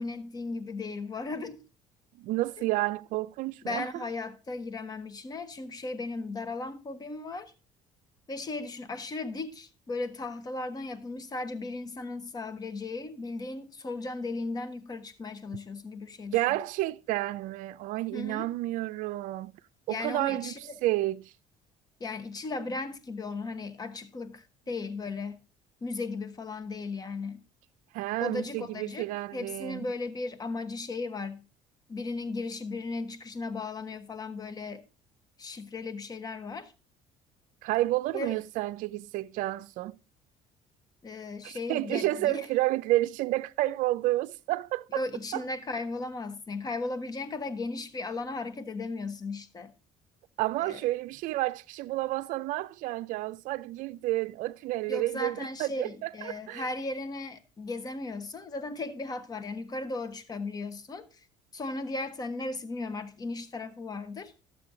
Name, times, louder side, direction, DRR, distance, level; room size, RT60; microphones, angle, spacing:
voice 1, 0.0-1.6 3.6-7.5 8.3-16.6 18.1-18.5 19.9-20.8 22.0-25.4 25.8-27.4 28.2-31.4 31.9-34.8 35.4-36.7 38.1-38.4 41.0-42.5 44.9-49.7 50.6-50.8 54.9-61.3 61.5-64.3, left 3 dB, 30° left, 1.1 m, -36 dB
voice 2, 2.2-4.0 16.3-19.5 19.9-21.3 27.9-29.9 37.6-40.0 41.4-45.0 45.3-45.4 50.4-56.7, right 17 dB, 70° right, 0.4 m, -30 dB
12.0 x 7.5 x 3.8 m
cardioid pair, 105°, 14 cm